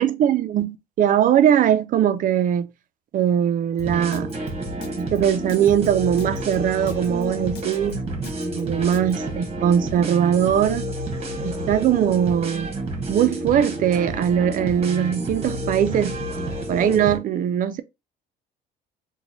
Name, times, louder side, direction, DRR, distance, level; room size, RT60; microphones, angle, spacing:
voice 1, 0.0-2.7 3.1-4.3 5.0-8.0 8.5-10.8 11.4-12.7 13.1-16.2 16.7-17.8, right 9 dB, 55° right, 0.4 m, -20 dB
Drum kit, 3.8-9.1, left 5 dB, 80° left, 0.7 m, -38 dB
sound 1, 3.8-17.2, right 1 dB, 35° right, 1.0 m, -30 dB
3.0 x 2.2 x 3.9 m
cardioid pair, 110°, 17 cm